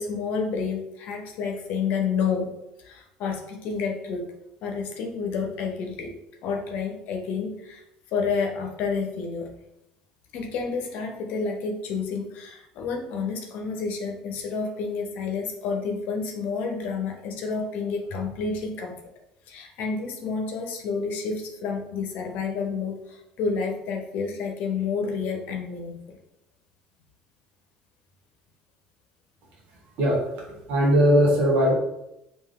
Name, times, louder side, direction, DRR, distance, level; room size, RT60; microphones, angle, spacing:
voice 1, 0.0-2.5 2.8-4.3 4.6-6.1 6.4-7.8 8.1-9.5 10.3-19.0 19.5-26.2, left 5 dB, 60° left, 2 dB, 0.7 m, -29 dB
voice 2, 30.0-31.7, equal, 60° right, -3 dB, 1.0 m, -20 dB
3.4 x 2.5 x 3.6 m, 0.87 s
hypercardioid pair, 70°, 3 cm